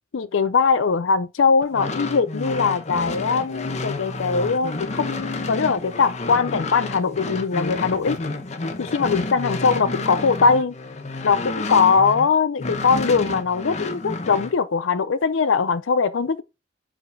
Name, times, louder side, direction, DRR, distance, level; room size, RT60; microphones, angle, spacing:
voice 1, 0.1-8.2 8.8-10.7 11.2-16.4, left 5 dB, 85° left, 0.5 m, -21 dB
sound 1, 1.6-12.3 12.6-14.5, left 2 dB, 35° left, 0.8 m, -30 dB
5.1 x 4.9 x 5.2 m
head